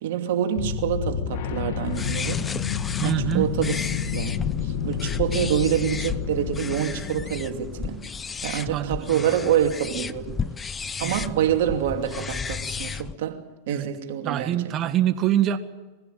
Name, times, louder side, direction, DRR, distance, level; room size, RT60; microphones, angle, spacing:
voice 1, 0.0-2.5 3.0-8.0 8.4-10.4 11.0-14.6 14.8-14.9, right 10 dB, 70° right, 2.6 m, -26 dB
sound 1, 0.6-8.3, left 8 dB, 65° left, 1.5 m, -30 dB
sound 2, 1.9-13.1, left 5 dB, 20° left, 0.7 m, -33 dB
voice 2, 3.0-3.5 8.7-9.3 11.0-11.2 13.7-13.9 14.2-15.6, right 11 dB, 40° right, 1.7 m, -24 dB
23.0 x 15.5 x 9.3 m
hypercardioid pair, 110°, 0 cm